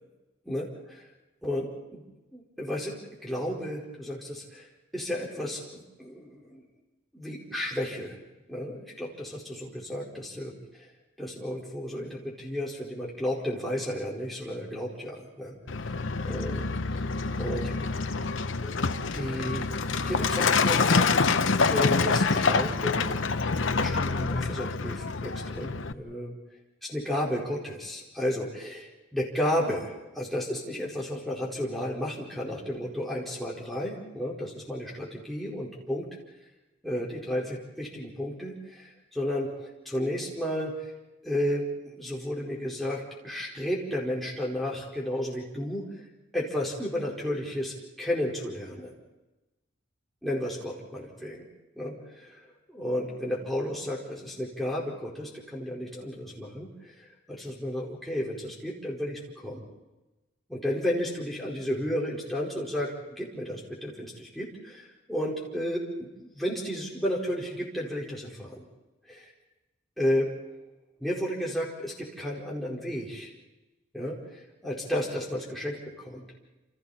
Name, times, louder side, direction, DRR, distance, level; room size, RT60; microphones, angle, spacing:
voice 1, 0.4-1.0 1.4-2.0 2.3-3.0 3.2-4.7 4.9-6.6 7.1-8.2 8.5-10.5 11.2-15.6 16.2-17.0 17.4-17.7 18.6-18.7 19.1-19.7 20.0-21.1 21.6-23.1 23.7-26.4 26.9-36.1 36.8-40.9 41.2-46.0 46.3-48.9 50.2-51.5 51.8-52.4 52.7-59.6 60.5-68.6 69.1-69.3 70.0-70.3 71.0-73.3 73.9-76.2, equal, ahead, -5 dB, 4.7 m, -33 dB
Truck, 15.7-25.9, left 4 dB, 80° left, 0.9 m, -26 dB
28.5 x 28.5 x 4.3 m, 1.0 s
head